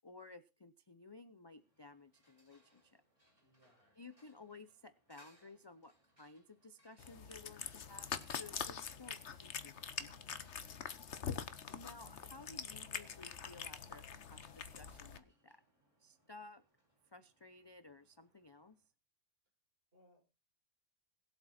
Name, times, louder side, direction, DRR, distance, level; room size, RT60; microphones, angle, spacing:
voice 1, 0.0-3.0 4.0-10.1 11.7-14.0 14.3-15.6 16.0-16.6 17.1-18.8, left 3 dB, 25° left, 12 dB, 0.6 m, -56 dB
sound 1, 1.4-18.9, equal, 25° right, 6.6 m, -74 dB
voice 2, 3.4-4.1 19.9-20.2, left 1 dB, 45° right, 0 dB, 7.5 m, -69 dB
Cat, 7.0-15.2, left 7 dB, 60° left, 1.3 m, -45 dB
21.5 x 8.1 x 4.3 m, 0.30 s
omnidirectional pair, 1.4 m